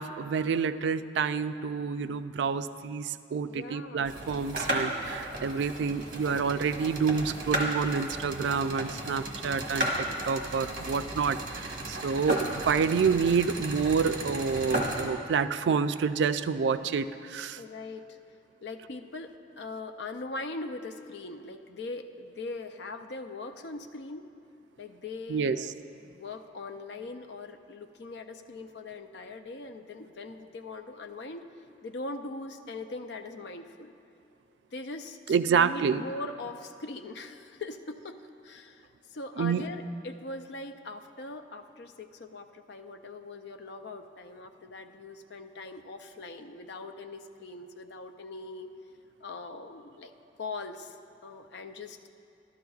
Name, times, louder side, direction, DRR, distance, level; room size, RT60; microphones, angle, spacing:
voice 1, 0.0-17.6 25.3-25.6 35.3-36.0 39.4-39.8, right 6 dB, 80° right, 11 dB, 0.3 m, -28 dB
voice 2, 3.4-4.1 17.6-18.2 18.6-24.3 24.8-25.8 26.0-31.5 31.8-33.9 34.7-48.7 49.2-50.1 50.4-51.0 51.2-52.1, left 3 dB, 75° left, 7 dB, 0.5 m, -41 dB
sound 1, 4.0-15.0, right 1 dB, 50° right, 1.3 m, -34 dB
12.5 x 12.5 x 2.4 m, 2.5 s
head